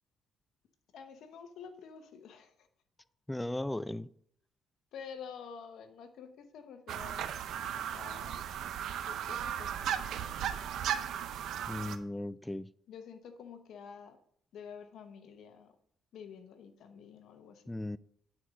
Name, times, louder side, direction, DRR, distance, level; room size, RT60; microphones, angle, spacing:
voice 1, 0.9-2.7 4.9-7.4 7.8-8.4 9.0-10.6 12.9-14.2 14.5-15.7 16.1-17.6, left 6 dB, 75° left, 1.0 m, -49 dB
voice 2, 3.3-4.1 11.7-12.7 17.7-18.0, left 1 dB, 10° left, 0.3 m, -36 dB
sound 1, 6.9-12.0, right 9 dB, 80° right, 0.6 m, -36 dB
9.6 x 4.4 x 5.0 m
cardioid pair, 90°, 0 cm